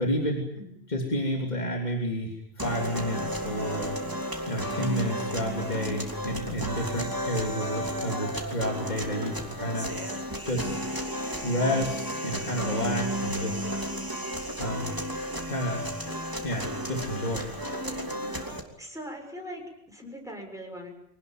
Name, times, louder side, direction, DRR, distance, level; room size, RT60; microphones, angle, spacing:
voice 1, 0.0-0.5 0.9-4.0 4.5-9.9 10.4-10.8 11.4-13.6 14.6-14.9 15.5-15.9 16.4-17.5, equal, 45° left, 1 dB, 3.5 m, -30 dB
sound 1, 2.6-18.6, equal, 20° right, 3.0 m, -33 dB
voice 2, 17.8-18.3 18.8-20.9, equal, 5° right, 1 dB, 6.6 m, -41 dB
25.0 x 19.0 x 9.1 m, 0.74 s
omnidirectional pair, 1.1 m